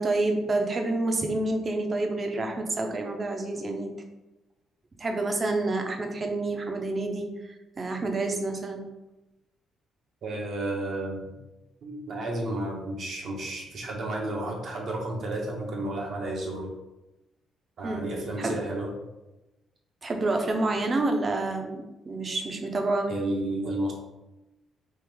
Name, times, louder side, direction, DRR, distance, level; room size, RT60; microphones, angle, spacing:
voice 1, 0.0-3.9 5.0-7.3 7.8-8.8 17.8-18.1 18.4-18.6 20.0-23.1, right 2 dB, 35° right, 3 dB, 0.6 m, -28 dB
voice 2, 10.2-11.4 11.8-16.7 17.8-18.9 23.1-23.9, right 1 dB, 60° right, -1 dB, 0.9 m, -32 dB
3.2 x 2.5 x 3.5 m, 1.0 s
cardioid pair, 90°, 0 cm